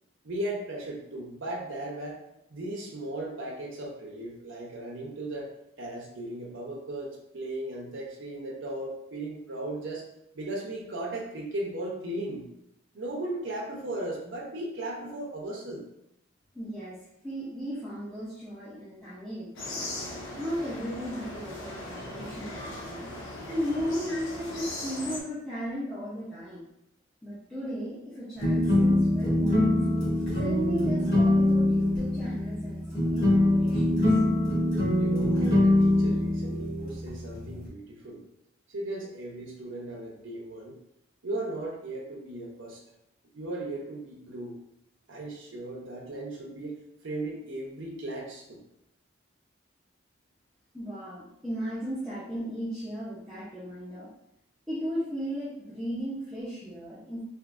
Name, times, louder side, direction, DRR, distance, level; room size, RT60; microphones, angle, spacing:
voice 1, 0.2-2.2 2.5-5.5 5.8-10.0 10.3-12.5 12.9-15.8 35.0-38.2 38.7-40.8 41.2-42.8 43.3-44.6 45.1-46.7 47.0-48.6, right 1 dB, 75° right, -2 dB, 0.7 m, -36 dB
voice 2, 16.5-17.0 17.2-19.9 20.4-23.1 23.5-26.6 27.2-29.8 30.4-34.1 50.7-54.1 54.7-57.2, equal, ahead, -12 dB, 0.6 m, -35 dB
sound 1, 19.5-25.2, left 1 dB, 80° left, 0.7 m, -39 dB
sound 2, 28.4-37.7, left 1 dB, 60° left, 1.4 m, -24 dB
3.5 x 2.5 x 2.5 m, 0.82 s
head